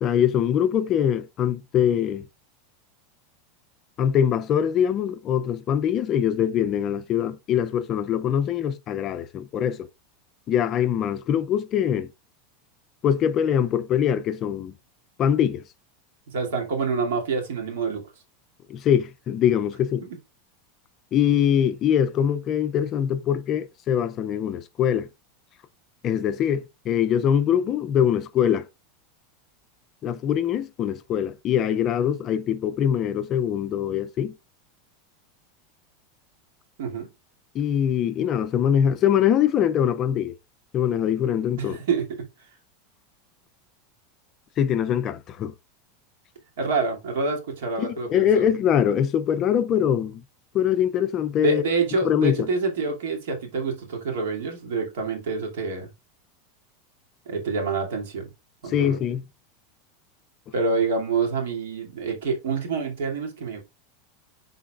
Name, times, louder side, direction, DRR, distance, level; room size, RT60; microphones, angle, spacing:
voice 1, 0.0-2.3 4.0-9.9 10.5-12.1 13.0-14.7 15.2-15.6 18.7-20.1 21.1-25.1 26.0-28.7 30.0-34.3 37.5-40.3 40.7-41.8 44.6-45.5 47.8-50.2 50.5-51.6 52.0-52.5 58.7-59.2, left 9 dB, 25° left, 0.4 m, -23 dB
voice 2, 16.3-18.0 36.8-37.1 41.5-42.1 46.6-48.4 51.4-55.9 57.3-58.3 58.6-59.0 60.5-63.6, right 4 dB, 80° right, 2.4 m, -27 dB
11.0 x 4.0 x 2.4 m
supercardioid pair, 180°, 0 cm